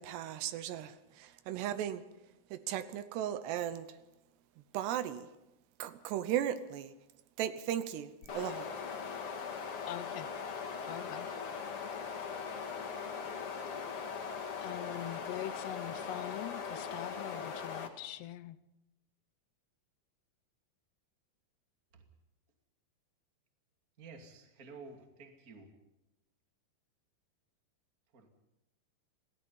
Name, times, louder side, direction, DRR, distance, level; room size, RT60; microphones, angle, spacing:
voice 1, 0.0-2.0 2.5-4.0 4.7-5.3 5.8-6.9 7.4-8.7, right 11 dB, 85° right, 3.1 m, -36 dB
sound 1, 8.2-17.9, left 6 dB, 45° left, 2.1 m, -40 dB
voice 2, 9.9-10.3 10.8-11.3 14.6-18.6, left 13 dB, 80° left, 2.9 m, -43 dB
voice 3, 24.0-25.8 28.1-28.3, right 4 dB, 25° right, 2.1 m, -52 dB
28.0 x 18.0 x 5.5 m
omnidirectional pair, 4.8 m